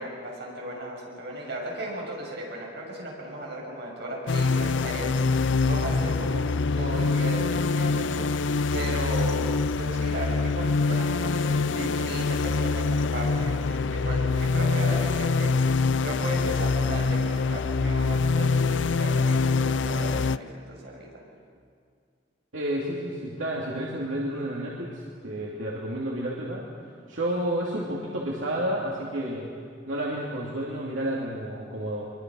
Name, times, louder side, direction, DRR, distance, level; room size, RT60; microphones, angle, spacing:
voice 1, 0.0-6.5 6.7-9.4 9.8-15.5 16.0-21.1, right 1 dB, 60° right, -2 dB, 6.9 m, -36 dB
sound 1, 4.3-20.4, left 4 dB, 65° left, 0.5 m, -25 dB
voice 2, 22.5-26.6 27.1-29.4 29.9-32.1, right 1 dB, 85° right, -4 dB, 2.8 m, -30 dB
23.5 x 22.5 x 6.3 m, 2.2 s
head